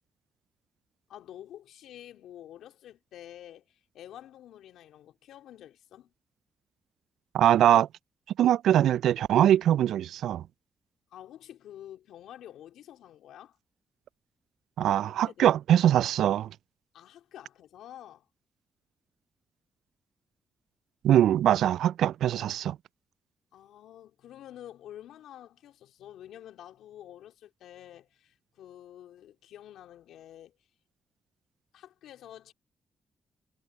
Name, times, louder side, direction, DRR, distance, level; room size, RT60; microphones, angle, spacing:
voice 1, 1.1-6.1 11.1-13.6 14.9-15.5 16.9-18.3 23.5-30.5 31.7-32.5, left 11 dB, 75° left, 2.8 m, -49 dB
voice 2, 7.3-7.9 8.4-10.4 14.8-16.5 21.0-22.8, right 11 dB, 75° right, 0.3 m, -22 dB
hypercardioid pair, 45°, 0 cm